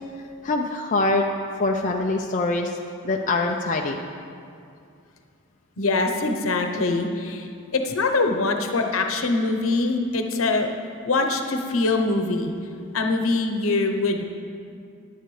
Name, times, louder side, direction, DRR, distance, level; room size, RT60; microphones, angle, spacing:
voice 1, 0.4-1.2 1.6-2.8 3.0-4.0 10.4-10.5 14.0-14.2, left 2 dB, 40° left, 1 dB, 0.5 m, -24 dB
voice 2, 5.8-10.7 11.0-12.5 12.9-14.2, left 3 dB, 85° left, 4 dB, 0.9 m, -23 dB
14.5 x 10.0 x 3.2 m, 2.4 s
head